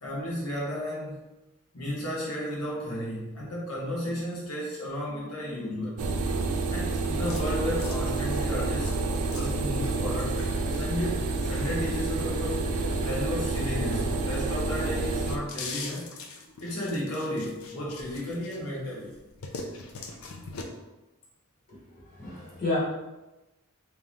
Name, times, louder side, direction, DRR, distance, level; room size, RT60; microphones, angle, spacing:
voice 1, 0.0-1.2 1.7-6.0 6.7-9.0 9.3-10.4 10.7-12.6 13.0-16.1 16.6-19.1, left 1 dB, 85° left, -5 dB, 1.1 m, -33 dB
sound 1, 6.0-15.4, right 3 dB, 85° right, 0.5 m, -29 dB
sound 2, 7.2-14.3 14.7-18.8 19.1-20.6, left 4 dB, 70° left, 0.5 m, -43 dB
voice 2, 21.7-22.8, left 2 dB, 40° left, -7 dB, 1.3 m, -32 dB
3.6 x 2.9 x 3.6 m, 1.0 s
head